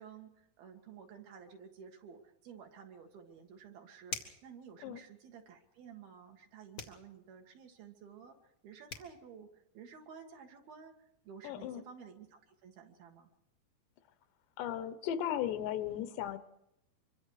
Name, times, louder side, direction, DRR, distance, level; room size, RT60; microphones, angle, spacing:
voice 1, 0.0-13.3, right 7 dB, 65° right, 3 dB, 3.4 m, -53 dB
sound 1, 4.1-4.5 6.7-7.0 8.6-8.7 8.9-9.1, left 4 dB, 50° left, 1.0 m, -42 dB
voice 2, 11.4-11.8 14.6-16.4, left 10 dB, 80° left, 12 dB, 3.1 m, -36 dB
25.5 x 24.0 x 4.8 m, 0.81 s
omnidirectional pair, 5.0 m